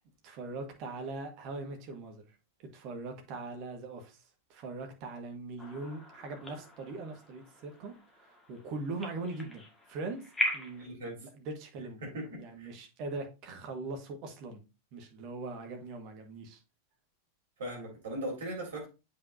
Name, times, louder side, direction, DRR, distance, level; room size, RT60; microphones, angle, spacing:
voice 1, 0.2-2.3 2.6-4.2 4.5-10.2 10.5-10.9 11.3-12.0 12.4-14.6 14.9-16.6, right 3 dB, 40° right, 1.6 m, -41 dB
sound 1, 5.6-10.9, left 1 dB, 10° left, 1.8 m, -39 dB
voice 2, 10.8-11.2 12.0-12.7 17.6-18.9, right 1 dB, 60° right, 3.5 m, -39 dB
8.1 x 5.3 x 2.7 m
figure-of-eight pair, 90°, 0 cm